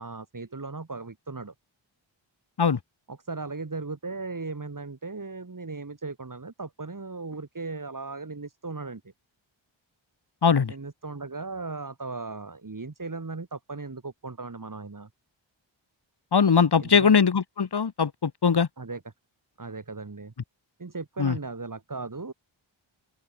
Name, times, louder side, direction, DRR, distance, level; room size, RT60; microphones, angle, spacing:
voice 1, 0.0-1.5 3.1-9.0 10.7-15.1 16.8-17.2 18.8-19.1 19.6-20.3 20.8-22.3, right 3 dB, 40° right, 6.0 m, -37 dB
voice 2, 10.4-10.7 16.3-18.7 21.2-21.4, left 6 dB, 55° left, 1.8 m, -21 dB
open air
wide cardioid pair, 70°, 47 cm